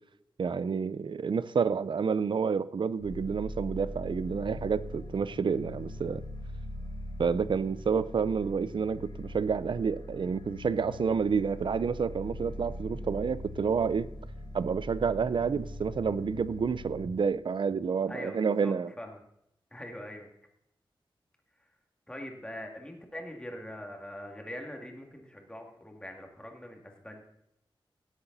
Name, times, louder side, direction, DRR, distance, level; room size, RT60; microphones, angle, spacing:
voice 1, 0.4-6.2 7.2-14.1 14.5-18.9, right 6 dB, 60° right, 16 dB, 0.5 m, -29 dB
sound 1, 3.0-17.0, left 1 dB, 90° left, 4.0 m, -41 dB
voice 2, 18.1-19.2 19.7-20.3 21.6-21.7 22.1-27.2, left 1 dB, 10° left, 1 dB, 2.3 m, -43 dB
17.0 x 7.9 x 4.1 m, 0.79 s
wide cardioid pair, 80°, 9 cm